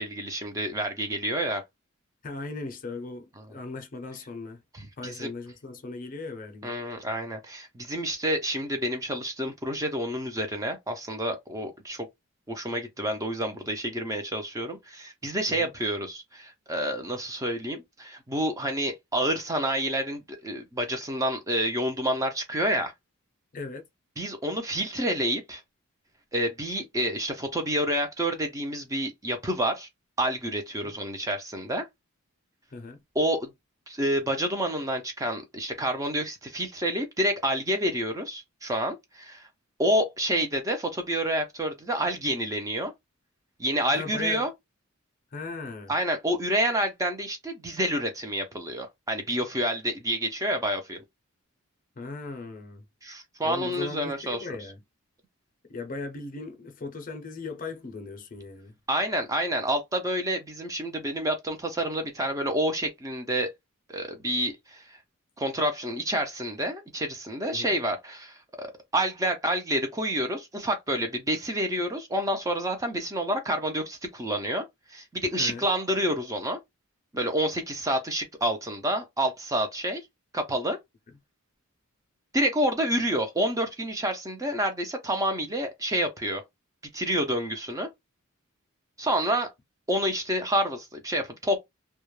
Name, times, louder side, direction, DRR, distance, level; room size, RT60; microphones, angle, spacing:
voice 1, 0.0-1.6 3.4-3.5 4.7-5.3 6.6-12.1 12.5-22.9 24.2-25.6 26.3-29.9 30.2-31.8 33.2-33.5 33.9-39.5 39.8-42.9 43.6-44.5 45.9-51.0 53.0-54.4 58.9-63.5 63.9-65.0 65.4-68.7 68.9-74.6 74.9-76.6 77.1-80.0 80.3-80.8 82.3-86.4 86.9-87.9 89.0-89.5 89.9-91.6, right 1 dB, 15° right, 0.4 m, -28 dB
voice 2, 2.2-4.6 5.0-6.8 15.5-15.7 23.5-23.8 30.8-30.9 32.7-33.0 43.9-44.5 45.3-45.9 52.0-52.8 53.4-54.8 55.7-58.7 67.5-67.7 75.4-75.7, left 3 dB, 40° left, 0.5 m, -38 dB
2.3 x 2.0 x 3.0 m
head